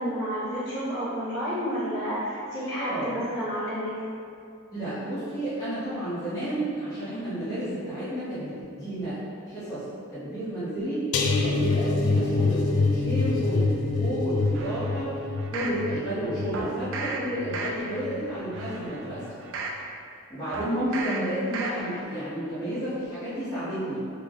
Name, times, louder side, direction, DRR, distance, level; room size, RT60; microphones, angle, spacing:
voice 1, 0.0-3.9, equal, 55° left, -10 dB, 1.3 m, -30 dB
voice 2, 2.8-3.1 4.7-9.2 9.5-9.8 10.1-11.1 11.4-15.2 15.5-19.4 20.3-24.0, right 1 dB, 15° left, -15 dB, 0.8 m, -31 dB
sound 1, 11.1-18.2 18.6-18.9 19.2-19.3, left 3 dB, 80° left, 0.3 m, -26 dB
sound 2, 14.5-15.8 16.5-17.2 17.5-18.0 18.5-19.8 20.5-21.2 21.5-22.0 22.4-22.5, right 4 dB, 60° right, 0.3 m, -35 dB
3.2 x 2.0 x 3.5 m, 2.4 s
head